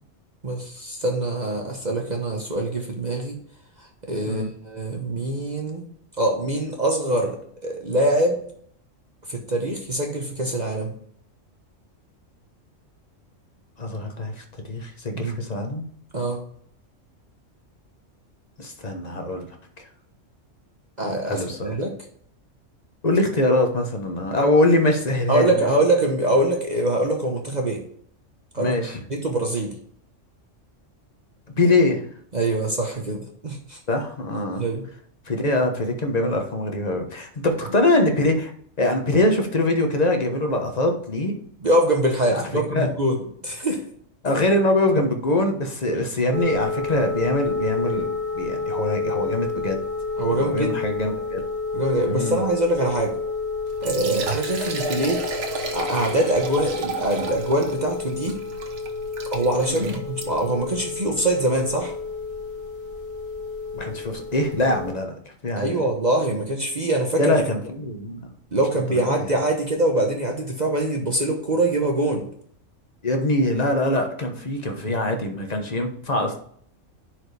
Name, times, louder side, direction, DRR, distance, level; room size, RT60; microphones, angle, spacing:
voice 1, 0.4-3.4 3.8-5.9 6.2-8.4 9.3-10.9 15.1-15.4 16.1-16.4 21.0-22.0 25.3-27.8 28.5-28.7 29.1-29.7 32.3-33.8 34.6-34.8 41.6-43.8 50.2-50.8 51.7-53.2 53.8-55.2 55.7-58.4 59.3-61.9 65.6-67.5 68.5-72.3, right 1 dB, 35° right, 1 dB, 1.1 m, -24 dB
voice 2, 13.8-15.8 18.6-19.5 21.2-21.8 23.0-25.5 28.6-29.0 31.6-32.0 33.9-34.6 35.3-38.5 38.8-41.3 42.3-42.9 44.2-49.8 50.3-51.4 52.1-52.4 54.0-54.2 59.7-59.9 63.7-65.1 65.4-65.8 67.2-68.3 68.9-69.3 73.0-76.4, left 1 dB, 35° left, 4 dB, 1.2 m, -23 dB
sound 1, 46.3-64.9, left 4 dB, 50° left, 1.7 m, -30 dB
Liquid, 53.7-60.6, right 4 dB, 65° right, 1.4 m, -33 dB
10.5 x 4.8 x 3.4 m, 0.62 s
omnidirectional pair, 1.3 m